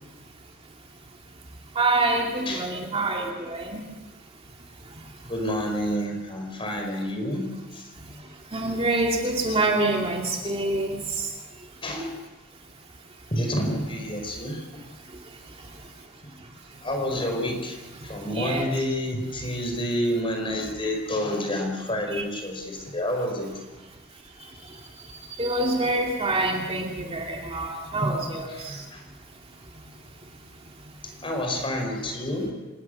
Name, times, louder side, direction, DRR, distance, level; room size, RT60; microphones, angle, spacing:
voice 1, 1.8-3.8 8.5-11.0 18.3-18.7 22.2-22.3 25.4-28.8, right 2 dB, 25° right, 0 dB, 2.4 m, -26 dB
voice 2, 2.4-2.8 5.3-7.9 11.8-12.2 13.3-14.8 16.2-16.3 16.8-23.5 28.0-29.1 31.0-32.5, equal, 25° left, 3 dB, 4.9 m, -29 dB
27.0 x 19.0 x 6.6 m, 1.3 s
head